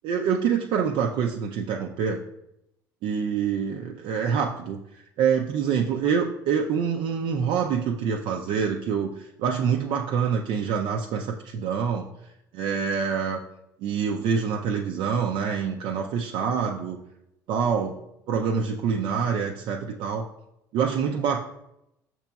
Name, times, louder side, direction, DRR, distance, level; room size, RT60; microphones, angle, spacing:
voice 1, 0.0-2.2 3.0-4.8 5.2-12.1 12.5-13.4 13.8-17.0 17.5-18.0 18.3-20.3 20.7-21.5, right 6 dB, 65° right, 2 dB, 0.4 m, -26 dB
5.8 x 2.9 x 2.3 m, 0.83 s
supercardioid pair, 80°, 9 cm